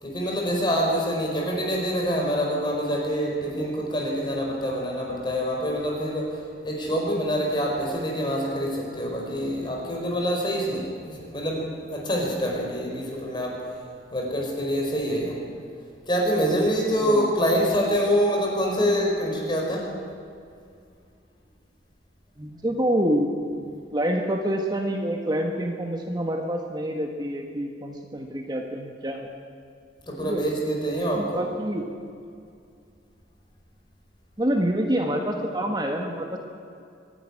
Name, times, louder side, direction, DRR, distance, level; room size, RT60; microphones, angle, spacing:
voice 1, 0.0-13.6 14.1-15.4 16.1-19.9 30.1-31.4, equal, 25° left, -1 dB, 4.6 m, -26 dB
voice 2, 17.0-17.3 22.4-23.3 23.9-29.3 30.2-30.5 31.1-31.9 34.4-36.4, right 1 dB, 25° right, 2 dB, 1.4 m, -27 dB
24.0 x 11.0 x 9.8 m, 2.4 s
head